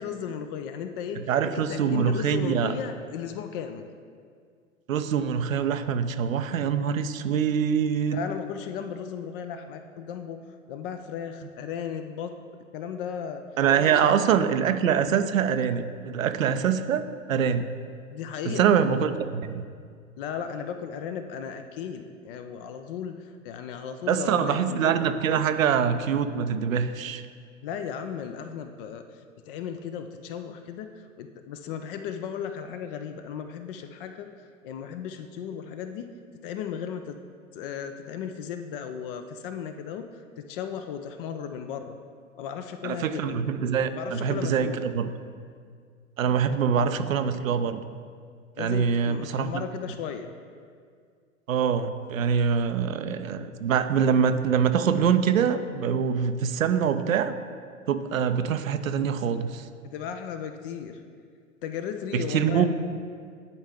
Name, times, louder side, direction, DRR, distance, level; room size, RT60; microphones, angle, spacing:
voice 1, 0.0-3.9 8.0-12.3 12.7-13.4 13.8-14.1 18.1-18.7 20.2-24.8 27.6-29.0 29.5-36.1 36.4-37.2 37.5-42.0 42.4-43.4 43.9-44.9 48.6-50.3 59.8-61.0 61.6-62.7, left 7 dB, 45° left, 8 dB, 0.5 m, -35 dB
voice 2, 1.3-2.7 4.9-8.2 13.6-17.7 18.5-19.6 24.1-27.2 42.8-45.1 46.2-47.8 48.6-49.5 51.5-57.3 57.9-59.6 62.1-62.7, right 7 dB, 80° right, 10 dB, 0.6 m, -24 dB
10.5 x 4.4 x 3.6 m, 2.1 s
figure-of-eight pair, 95°, 40 cm